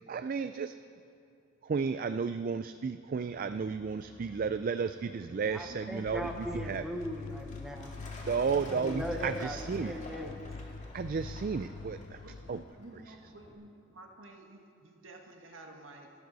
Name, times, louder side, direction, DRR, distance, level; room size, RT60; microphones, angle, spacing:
voice 1, 0.1-0.8 1.6-6.8 8.3-9.9 10.9-12.2 12.5-12.6 13.1-13.2, right 5 dB, 45° right, 11 dB, 0.3 m, -33 dB
Truck, 3.3-13.5, left 1 dB, 35° left, 2.0 m, -51 dB
voice 2, 5.4-7.9 8.7-10.4, equal, ahead, 3 dB, 0.9 m, -39 dB
sound 1, 6.1-12.6, left 4 dB, 70° left, 0.5 m, -44 dB
voice 3, 7.9-8.6 12.2-16.1, right 2 dB, 75° right, 2 dB, 1.7 m, -52 dB
26.0 x 12.5 x 4.1 m, 2.6 s
head